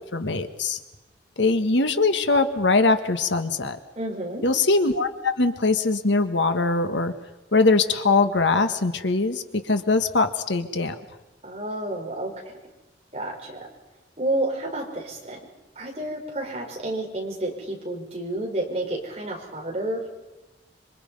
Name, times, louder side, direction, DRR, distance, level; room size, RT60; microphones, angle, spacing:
voice 1, 0.1-0.8 1.4-3.8 4.4-7.1 7.5-10.9, left 3 dB, 90° left, 8 dB, 1.6 m, -22 dB
voice 2, 3.9-4.4 11.4-12.3 13.1-13.6 14.2-15.4 15.7-20.1, right 1 dB, 35° right, 0 dB, 5.1 m, -30 dB
26.5 x 24.5 x 5.5 m, 1.0 s
head